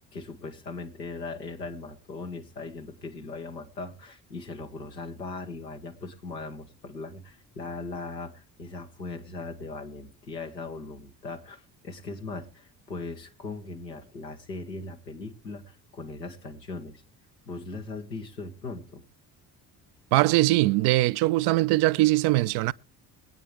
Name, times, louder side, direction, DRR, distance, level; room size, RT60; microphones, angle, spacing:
voice 1, 0.0-17.0 17.5-19.0, left 3 dB, 85° left, 1.5 m, -39 dB
voice 2, 20.1-22.7, right 19 dB, 55° right, 0.6 m, -21 dB
22.5 x 9.1 x 3.3 m
figure-of-eight pair, 45°, 49 cm